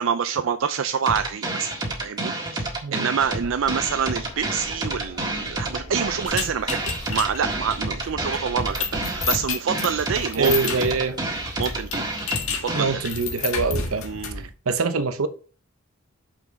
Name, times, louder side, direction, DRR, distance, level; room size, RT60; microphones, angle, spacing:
voice 1, 0.0-1.7 2.0-6.8 7.1-10.9 11.6-12.0 12.6-13.1 14.0-14.4, right 7 dB, 65° right, 0.4 m, -27 dB
sound 1, 1.1-13.1, right 2 dB, 20° right, 1.8 m, -29 dB
voice 2, 2.8-3.1 10.4-11.2 12.7-14.1 14.7-15.3, right 4 dB, 80° right, 0.8 m, -24 dB
sound 2, 3.2-9.5, left 1 dB, 25° left, 1.4 m, -43 dB
sound 3, 6.3-14.5, left 5 dB, 80° left, 1.6 m, -31 dB
7.2 x 6.0 x 4.0 m
head